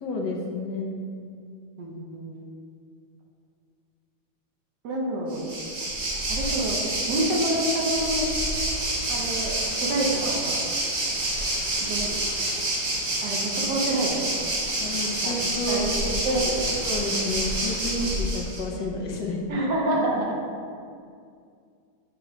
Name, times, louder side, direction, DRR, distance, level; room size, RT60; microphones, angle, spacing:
voice 1, 0.0-1.1 14.8-15.9 16.3-16.4 16.8-19.7, left 2 dB, 65° left, -1 dB, 1.3 m, -30 dB
voice 2, 1.8-2.3 4.8-5.4 6.3-6.8 7.1-8.3 9.1-10.6 11.8-12.1 13.2-14.2 15.2-15.4 15.7-16.7 19.5-20.4, right 1 dB, 65° right, -2 dB, 1.4 m, -27 dB
Waves surf, 5.3-18.6, right 1 dB, 50° right, 1.5 m, -28 dB
7.8 x 3.0 x 5.0 m, 2.3 s
omnidirectional pair, 2.1 m